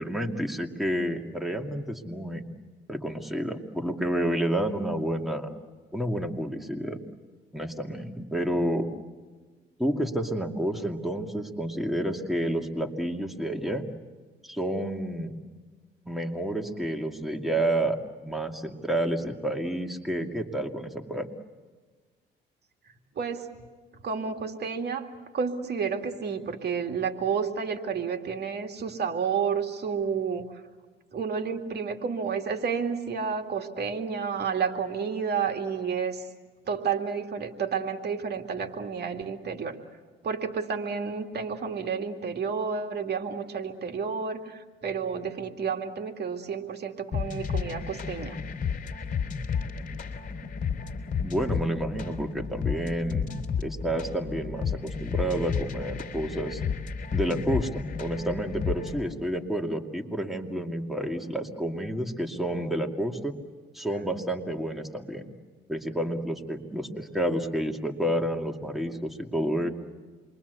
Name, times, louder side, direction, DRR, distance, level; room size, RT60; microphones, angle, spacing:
voice 1, 0.0-2.4 2.9-5.5 5.9-7.0 7.5-8.9 9.8-13.8 14.4-15.3 16.1-18.0 18.2-21.3 51.2-53.3 53.6-56.6 57.1-63.3 63.7-65.3 65.7-69.7, right 1 dB, ahead, 3 dB, 2.4 m, -30 dB
voice 2, 22.9-23.5 24.0-25.1 25.3-30.6 31.1-36.3 36.7-39.8 40.2-48.4, right 6 dB, 55° right, 5 dB, 2.4 m, -30 dB
sound 1, 47.1-59.1, left 6 dB, 40° left, 3.5 m, -32 dB
28.0 x 23.0 x 8.2 m, 1.4 s
cardioid pair, 90°, 20 cm